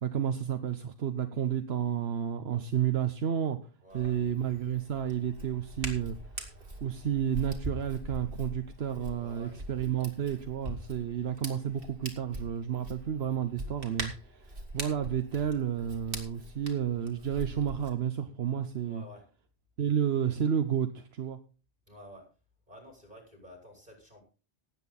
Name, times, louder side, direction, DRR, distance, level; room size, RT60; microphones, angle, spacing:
voice 1, 0.0-3.6 3.9-6.2 6.8-19.0 19.8-21.4, right 9 dB, 80° right, 8 dB, 1.2 m, -31 dB
voice 2, 3.8-4.2 9.2-9.6 18.8-19.2 21.9-22.3 22.7-24.2, equal, 45° right, 2 dB, 6.3 m, -51 dB
Hands, 3.9-17.9, right 1 dB, 60° right, 2.8 m, -42 dB
18.0 x 9.0 x 4.2 m, 0.35 s
omnidirectional pair, 1.1 m